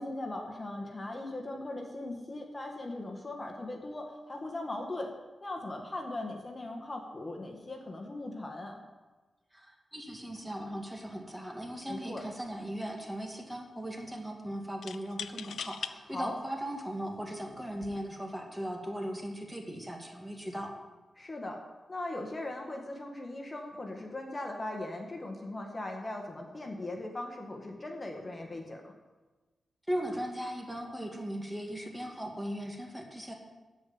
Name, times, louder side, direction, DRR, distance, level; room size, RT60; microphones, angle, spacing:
voice 1, 0.0-5.1 5.4-8.8 11.9-12.2 16.1-16.3 21.2-21.6 21.9-28.8, left 2 dB, 35° left, 2 dB, 1.7 m, -39 dB
voice 2, 9.5-20.7 29.9-33.3, equal, 10° right, 1 dB, 2.1 m, -38 dB
sound 1, 11.7-11.9 12.2-12.9 14.8-15.9 16.7-16.8 17.7-18.0, left 7 dB, 85° left, 0.4 m, -41 dB
13.0 x 5.1 x 8.7 m, 1.2 s
cardioid pair, 65°, 0 cm